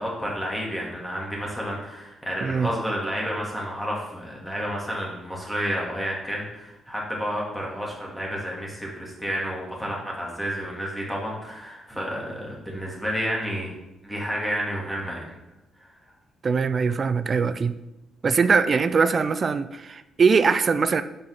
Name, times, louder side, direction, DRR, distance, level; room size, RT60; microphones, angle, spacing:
voice 1, 0.0-13.7 14.0-15.2 15.8-15.9, equal, 5° left, -3 dB, 2.2 m, -30 dB
voice 2, 16.4-17.8 18.2-21.0, right 5 dB, 40° right, 13 dB, 0.4 m, -21 dB
5.5 x 5.3 x 5.9 m, 0.94 s
cardioid pair, 90°, 0 cm